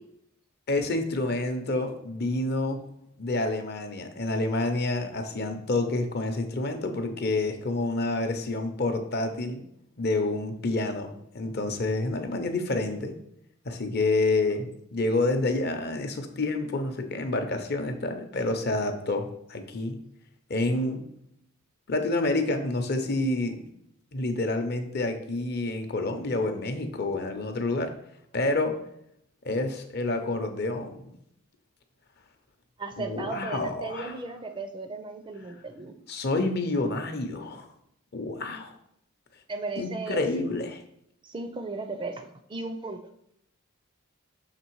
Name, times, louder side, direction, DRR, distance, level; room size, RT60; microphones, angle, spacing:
voice 1, 0.7-2.8 3.2-9.6 10.0-13.1 13.6-20.0 20.5-21.0 21.9-23.6 24.1-27.9 28.3-28.8 29.4-31.0 33.0-34.2 36.1-37.7 38.1-38.7 39.8-40.8, left 2 dB, 50° left, 6 dB, 0.7 m, -28 dB
voice 2, 32.8-36.0 39.5-40.2 41.2-43.0, right 3 dB, 25° right, 7 dB, 0.4 m, -36 dB
6.7 x 3.3 x 4.6 m, 0.74 s
head